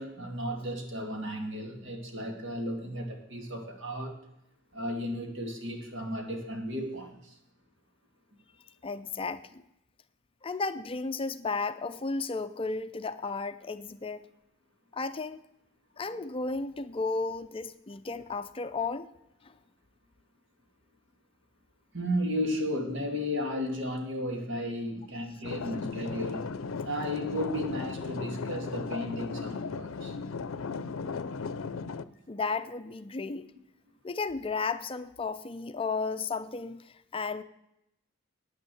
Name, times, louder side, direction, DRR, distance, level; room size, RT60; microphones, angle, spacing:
voice 1, 0.0-4.2 4.7-7.4 21.9-26.5 26.8-30.2, equal, 65° right, 3 dB, 2.5 m, -34 dB
voice 2, 8.8-9.6 10.4-14.3 14.9-15.4 16.0-19.1 19.4-19.5 32.3-33.5 34.0-37.4, left 4 dB, 25° left, 11 dB, 0.5 m, -34 dB
sound 1, 25.4-32.0, left 4 dB, 90° left, 0.6 m, -36 dB
10.0 x 9.1 x 7.8 m, 0.82 s
head